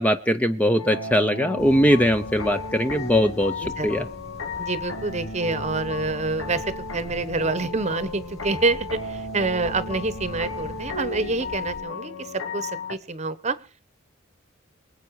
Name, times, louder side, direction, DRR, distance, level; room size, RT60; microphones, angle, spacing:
voice 1, 0.0-4.1, equal, 5° left, 8 dB, 0.6 m, -21 dB
sound 1, 0.8-13.0, left 3 dB, 90° left, 1.8 m, -34 dB
sound 2, 1.6-11.8, equal, 30° left, 3.0 m, -42 dB
voice 2, 3.6-4.1 4.6-6.6 6.9-8.8 9.1-12.1 12.5-13.6, right 3 dB, 35° right, 14 dB, 1.0 m, -27 dB
24.5 x 8.1 x 4.8 m, 0.38 s
head